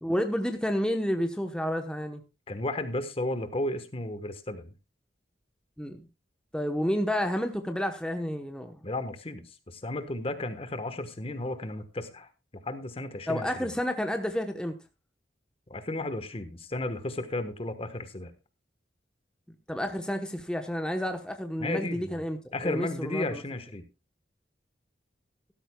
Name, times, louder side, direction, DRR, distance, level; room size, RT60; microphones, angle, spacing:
voice 1, 0.0-2.2 5.8-6.0 6.5-8.8 13.3-14.8 19.7-22.4 22.6-23.4, equal, 5° left, 1.0 m, -30 dB
voice 2, 2.5-4.7 8.8-12.3 12.6-13.7 15.7-18.3 21.6-22.2 22.5-23.8, left 2 dB, 35° left, 1.2 m, -34 dB
15.0 x 13.0 x 2.3 m
head